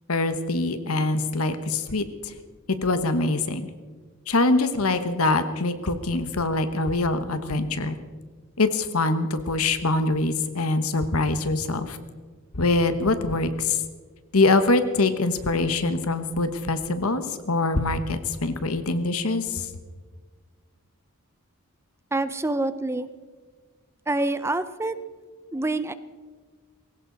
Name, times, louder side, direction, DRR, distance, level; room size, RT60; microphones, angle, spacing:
voice 1, 0.1-2.3 2.8-3.6 4.3-8.0 8.6-12.0 12.5-13.8 14.3-19.7, left 2 dB, 80° left, 10 dB, 1.3 m, -24 dB
voice 2, 22.1-23.1 24.1-25.0 25.5-25.9, right 2 dB, 10° right, 13 dB, 0.5 m, -26 dB
20.5 x 17.5 x 4.0 m, 1.4 s
head